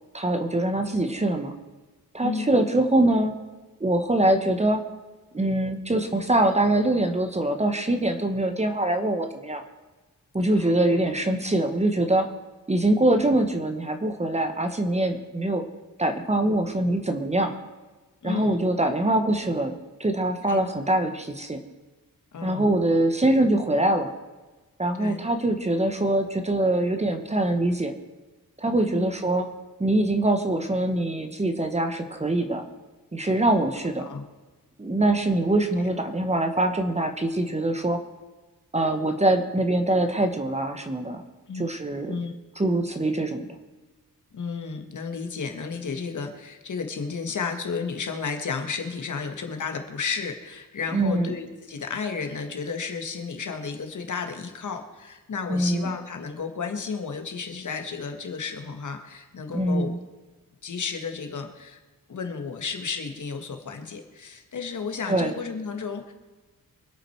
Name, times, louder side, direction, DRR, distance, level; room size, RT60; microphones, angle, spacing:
voice 1, 0.1-1.5 2.1-3.3 3.8-4.8 5.3-9.6 10.3-12.3 12.7-15.6 16.0-17.5 18.2-19.7 20.0-21.6 22.4-24.1 24.8-27.9 28.6-29.5 29.8-32.6 33.1-34.0 34.8-38.0 38.7-41.2 41.5-42.2 42.6-43.5 50.9-51.3 55.5-55.9 59.5-60.0 65.1-65.3, right 1 dB, 20° right, 6 dB, 1.1 m, -23 dB
voice 2, 18.2-18.6 20.5-20.6 22.3-22.7 25.0-25.2 28.9-29.1 34.0-34.2 41.5-41.7 42.1-42.3 44.3-59.9 60.6-61.8 62.1-66.1, left 5 dB, 60° left, 5 dB, 1.8 m, -33 dB
24.5 x 8.9 x 4.6 m, 1.2 s
wide cardioid pair, 175°, 34 cm